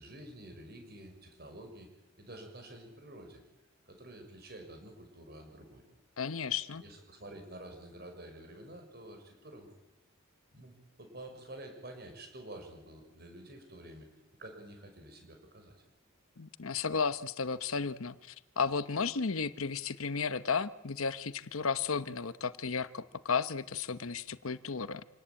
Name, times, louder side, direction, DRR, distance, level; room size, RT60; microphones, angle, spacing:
voice 1, 0.0-1.9 2.2-3.4 3.9-5.8 6.7-9.7 10.5-14.1 14.4-15.7, right 1 dB, 50° right, 5 dB, 6.3 m, -49 dB
voice 2, 6.2-6.8 16.4-25.0, left 5 dB, 80° left, 14 dB, 1.0 m, -34 dB
27.0 x 18.5 x 8.8 m, 0.97 s
head